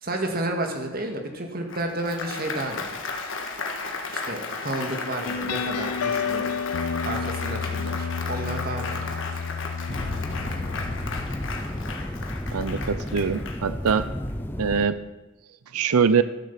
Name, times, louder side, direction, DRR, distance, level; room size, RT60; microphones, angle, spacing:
voice 1, 0.0-3.0 4.1-6.4 7.1-9.1, right 1 dB, 40° right, 3 dB, 1.9 m, -31 dB
Applause, 1.7-14.4, left 4 dB, 55° left, 1.5 m, -35 dB
sound 1, 5.3-12.4, left 6 dB, 80° left, 0.5 m, -31 dB
sound 2, 9.9-14.9, left 1 dB, 10° left, 0.6 m, -32 dB
voice 2, 12.5-14.1 14.6-15.0 15.7-16.2, right 6 dB, 80° right, 14 dB, 0.5 m, -23 dB
13.0 x 7.5 x 7.3 m, 1.1 s
head